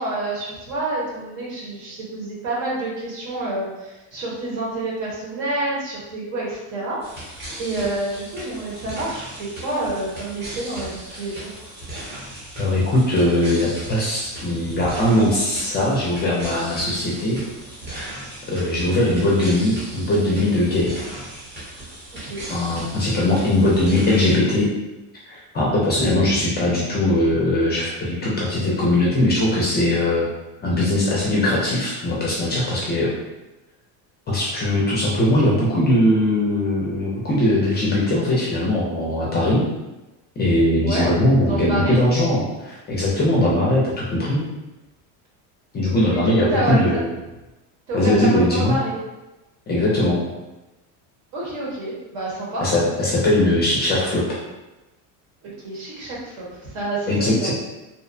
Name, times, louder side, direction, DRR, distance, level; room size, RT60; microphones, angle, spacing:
voice 1, 0.0-11.6 14.6-14.9 22.1-22.5 25.9-26.1 40.8-41.1 41.4-42.0 46.0-46.8 47.9-49.0 51.3-52.6 55.6-57.5, right 2 dB, 75° right, -5 dB, 1.2 m, -28 dB
sound 1, 7.0-24.4, right 1 dB, 25° right, 0.6 m, -37 dB
voice 2, 12.6-17.4 17.9-18.2 18.5-20.9 22.5-24.7 25.3-30.3 30.6-33.1 34.3-39.6 40.4-44.4 45.7-47.1 47.9-48.8 49.7-50.2 52.6-54.2 57.1-57.5, left 1 dB, 25° left, -5 dB, 0.3 m, -20 dB
2.6 x 2.1 x 2.5 m, 1.0 s
cardioid pair, 145°, 45 cm